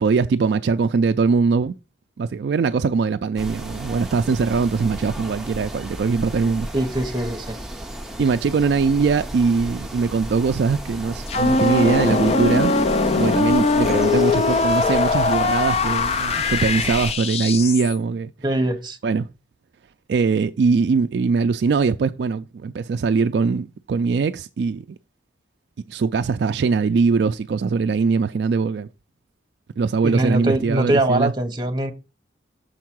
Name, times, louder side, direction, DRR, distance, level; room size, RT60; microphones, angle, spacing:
voice 1, 0.0-1.7 2.2-6.7 8.2-12.7 13.1-18.3 19.0-19.3 20.1-24.8 25.9-28.9 29.8-31.3, right 5 dB, 60° right, 0.3 m, -21 dB
sound 1, 3.4-17.1, right 1 dB, ahead, 0.8 m, -34 dB
voice 2, 6.7-7.6 18.4-19.0 30.0-31.9, right 1 dB, 25° right, 1.0 m, -22 dB
sound 2, 11.3-18.0, left 3 dB, 35° left, 0.4 m, -21 dB
6.5 x 4.6 x 6.1 m
head